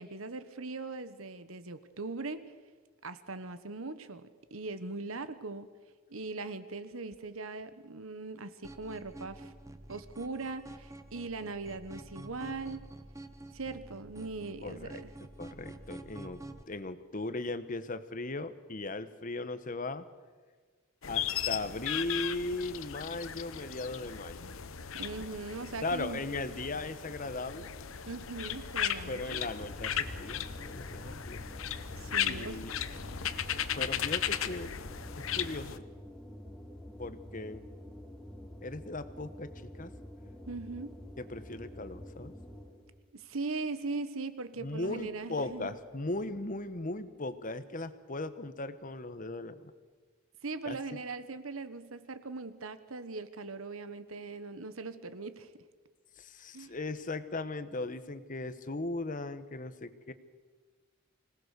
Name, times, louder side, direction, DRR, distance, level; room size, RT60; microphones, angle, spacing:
voice 1, 0.0-2.4 3.0-5.7 6.1-9.5 9.9-12.8 13.5-15.1 24.9-26.2 28.0-29.4 32.0-32.6 40.5-41.0 43.1-45.7 50.4-55.5 56.5-56.8, right 3 dB, 80° right, 12 dB, 1.3 m, -40 dB
sound 1, 8.6-16.6, right 2 dB, 15° right, 0.9 m, -48 dB
voice 2, 14.6-15.0 15.4-16.4 16.7-20.0 21.0-24.4 25.8-27.7 29.1-31.4 32.2-32.7 33.8-34.8 35.3-35.8 37.0-37.6 38.6-39.5 39.8-39.9 41.2-42.3 44.6-49.7 50.7-51.0 56.2-60.1, left 2 dB, 40° left, 12 dB, 1.1 m, -38 dB
sound 2, 21.0-35.8, left 9 dB, 70° left, 0.9 m, -36 dB
sound 3, 29.3-42.9, equal, 5° left, 3.1 m, -48 dB
25.5 x 18.5 x 6.7 m, 1.4 s
head